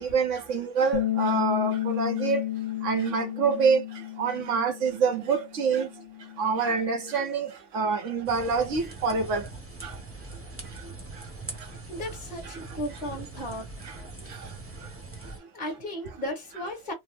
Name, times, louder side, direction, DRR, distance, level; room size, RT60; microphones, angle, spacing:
voice 1, 0.0-2.4 2.8-3.8 4.2-5.9 6.4-7.5 7.7-9.5 9.8-9.9, right 5 dB, 65° right, 1.0 m, -26 dB
Bass guitar, 0.9-7.2, left 13 dB, 65° left, 1.1 m, -32 dB
sound 1, 8.2-15.4, right 3 dB, 10° right, 0.7 m, -42 dB
voice 2, 11.9-13.7 15.5-16.9, equal, 35° left, 1.2 m, -35 dB
3.4 x 2.0 x 3.0 m
omnidirectional pair, 1.4 m